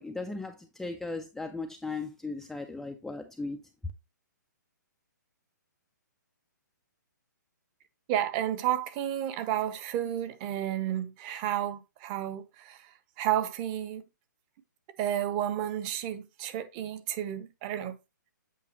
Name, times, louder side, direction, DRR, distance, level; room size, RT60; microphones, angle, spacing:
voice 1, 0.0-3.6, left 3 dB, ahead, 0.3 m, -37 dB
voice 2, 8.1-12.9 13.2-14.1 15.0-18.0, right 11 dB, 25° right, 0.7 m, -31 dB
8.4 x 4.8 x 2.9 m
hypercardioid pair, 150°, 10 cm